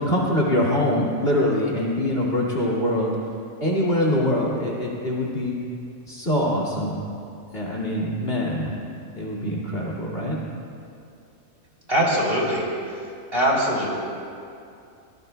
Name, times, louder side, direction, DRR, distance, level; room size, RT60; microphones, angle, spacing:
voice 1, 0.0-3.1 3.6-5.5 6.1-7.0 7.5-8.8 9.2-10.4, left 1 dB, 40° left, -4 dB, 2.7 m, -24 dB
voice 2, 11.9-12.6 13.3-13.9, equal, 40° right, -4 dB, 3.6 m, -21 dB
25.0 x 19.5 x 2.3 m, 2.5 s
omnidirectional pair, 1.5 m